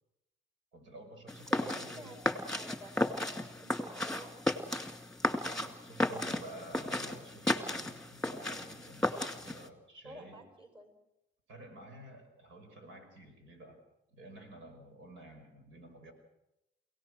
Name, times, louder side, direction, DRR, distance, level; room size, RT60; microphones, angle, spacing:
voice 1, 0.7-2.1 2.4-2.6 3.3-3.5 5.2-10.5 11.5-13.8 14.1-16.1, right 1 dB, 80° right, 5 dB, 5.7 m, -51 dB
sound 1, 1.3-9.7, left 1 dB, 5° left, 2.2 m, -34 dB
voice 2, 1.5-2.9 3.6-4.9 10.0-10.9, right 1 dB, 25° right, 7 dB, 5.3 m, -50 dB
28.5 x 17.5 x 6.4 m, 0.90 s
cardioid pair, 90°, 20 cm